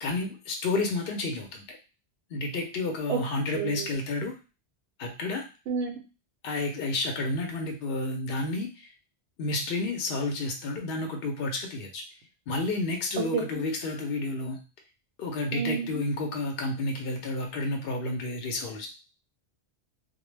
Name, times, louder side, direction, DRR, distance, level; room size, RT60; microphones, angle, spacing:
voice 1, 0.0-1.8 2.3-4.3 5.0-5.4 6.4-8.9 9.4-12.0 12.5-14.6 15.2-18.9, left 2 dB, 65° left, 3 dB, 0.7 m, -30 dB
voice 2, 3.5-3.9 5.7-6.0 13.3-13.4 15.5-15.9, right 6 dB, 90° right, 3 dB, 0.9 m, -29 dB
2.1 x 2.0 x 3.1 m, 0.32 s
omnidirectional pair, 1.1 m